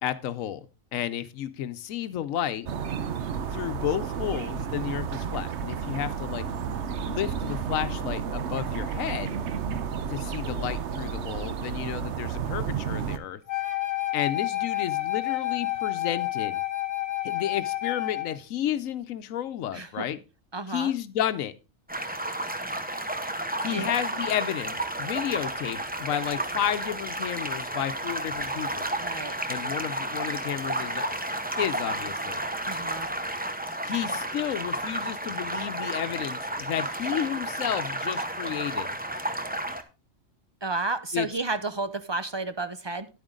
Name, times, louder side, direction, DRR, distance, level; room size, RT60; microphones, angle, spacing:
voice 1, 0.0-2.7 3.5-6.4 7.1-9.4 10.1-13.4 14.1-16.6 17.2-20.2 20.7-21.5 23.6-28.9 29.5-31.1 31.6-32.4 33.8-39.0 41.1-41.3, left 11 dB, 85° left, 1.1 m, -32 dB
sound 1, 2.7-13.2, right 7 dB, 65° right, 1.0 m, -32 dB
Wind instrument woodwind instrument, 13.5-18.4, left 15 dB, 35° left, 1.6 m, -29 dB
voice 2, 19.7-20.1 20.5-20.9 23.7-23.9 29.0-29.4 32.7-33.1 40.6-43.1, right 3 dB, 40° right, 0.4 m, -31 dB
sound 2, 21.9-39.8, right 1 dB, 10° right, 0.7 m, -32 dB
10.0 x 8.9 x 3.7 m
omnidirectional pair, 1.4 m